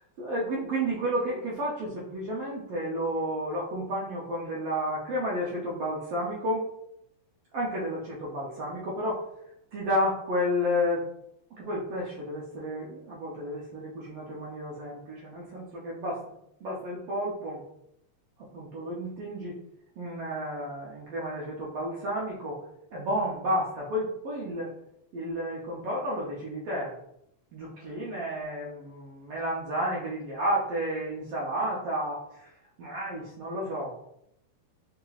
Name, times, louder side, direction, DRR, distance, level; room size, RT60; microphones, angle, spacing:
voice 1, 0.2-6.7 7.5-9.2 9.7-11.1 11.6-16.3 16.6-17.6 18.4-19.6 20.0-22.6 22.9-24.7 25.1-26.9 27.5-32.5 32.8-33.9, equal, 85° right, -5 dB, 1.3 m, -31 dB
5.4 x 2.8 x 2.3 m, 0.78 s
omnidirectional pair, 3.7 m